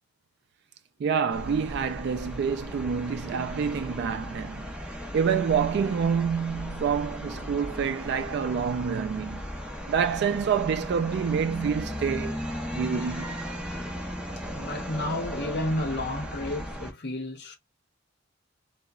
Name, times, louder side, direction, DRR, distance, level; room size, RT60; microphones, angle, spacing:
voice 1, 1.0-4.7 5.1-9.5 9.9-12.4 12.7-13.4, right 7 dB, 55° right, 0.3 m, -27 dB
sound 1, 1.3-16.9, equal, 5° right, 0.7 m, -36 dB
voice 2, 14.5-17.6, left 1 dB, 60° left, 0.8 m, -31 dB
3.7 x 2.0 x 2.3 m
head